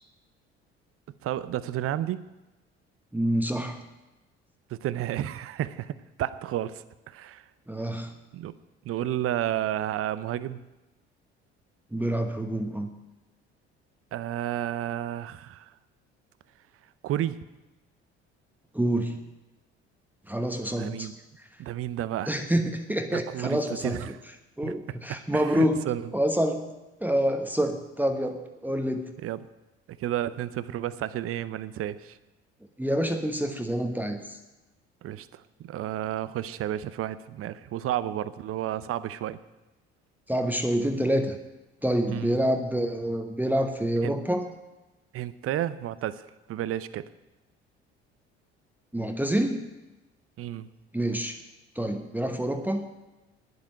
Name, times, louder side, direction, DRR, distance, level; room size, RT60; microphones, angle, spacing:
voice 1, 1.2-2.3 4.7-7.4 8.3-8.5 8.8-10.6 14.1-15.6 17.0-17.4 20.8-21.1 21.6-22.3 23.1-24.2 24.6-24.7 25.3-26.0 29.2-29.5 30.0-32.2 35.0-39.4 42.1-42.4 44.0-44.1 45.1-46.2 46.5-47.1 50.4-50.7, right 12 dB, 45° right, 16 dB, 0.7 m, -31 dB
voice 2, 3.1-3.8 7.7-8.1 11.9-12.9 18.7-19.2 20.3-21.1 22.3-24.0 24.6-25.8 26.1-26.7 27.0-29.1 32.8-34.4 40.3-41.4 41.8-44.5 48.9-49.7 50.9-51.4 51.7-52.9, equal, 5° right, 5 dB, 1.1 m, -27 dB
10.5 x 7.9 x 9.2 m, 1.1 s
figure-of-eight pair, 55°, 32 cm